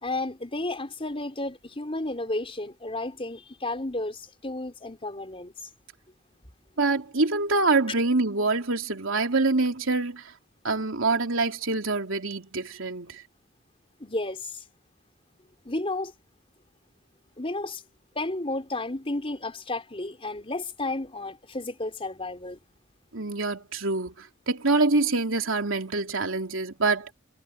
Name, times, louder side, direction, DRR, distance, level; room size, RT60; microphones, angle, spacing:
voice 1, 0.0-5.7 14.0-14.6 15.6-16.1 17.4-17.8 18.1-22.6, left 2 dB, 30° left, 4.5 m, -32 dB
voice 2, 6.8-10.3 10.6-13.2 23.1-27.1, right 3 dB, 80° right, 3.1 m, -25 dB
head